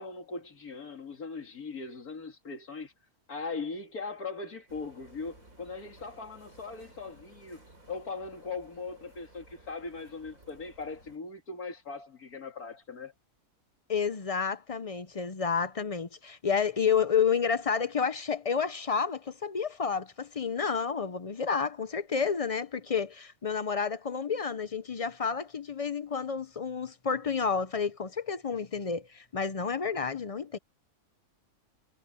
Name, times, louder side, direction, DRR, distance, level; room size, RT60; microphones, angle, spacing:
voice 1, 0.0-2.9 3.3-7.6 7.9-13.1, left 4 dB, 85° left, 2.8 m, -40 dB
sound 1, 4.7-11.2, right 2 dB, 65° right, 6.4 m, -56 dB
voice 2, 13.9-30.6, left 6 dB, 45° left, 0.4 m, -30 dB
omnidirectional pair, 1.5 m